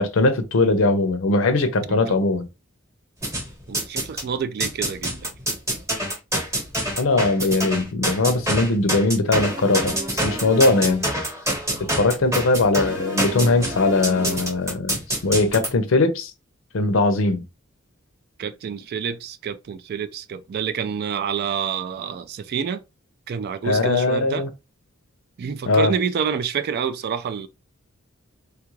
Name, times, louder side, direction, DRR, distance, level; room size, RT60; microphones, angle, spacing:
voice 1, 0.0-2.4 7.0-11.1 11.8-16.3 16.7-17.4 23.6-24.5 25.7-25.9, left 3 dB, 70° left, 0.6 m, -20 dB
sound 1, 3.2-4.3 4.6-15.7, right 1 dB, 15° right, 1.0 m, -26 dB
voice 2, 3.7-5.3 18.4-22.8 23.3-24.4 25.4-27.5, right 7 dB, 50° right, 0.3 m, -28 dB
3.3 x 2.4 x 3.0 m
head